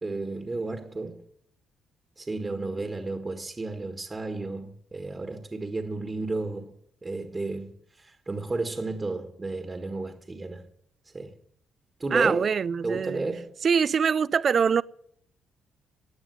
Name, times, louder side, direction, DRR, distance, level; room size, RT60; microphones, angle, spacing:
voice 1, 0.0-1.2 2.2-10.7 11.0-11.4 12.0-12.6 12.8-13.6, right 3 dB, 25° right, 1.6 m, -32 dB
voice 2, 12.1-13.2 13.6-14.8, right 6 dB, 50° right, 0.5 m, -24 dB
15.5 x 9.1 x 9.4 m
cardioid pair, 90°, 0 cm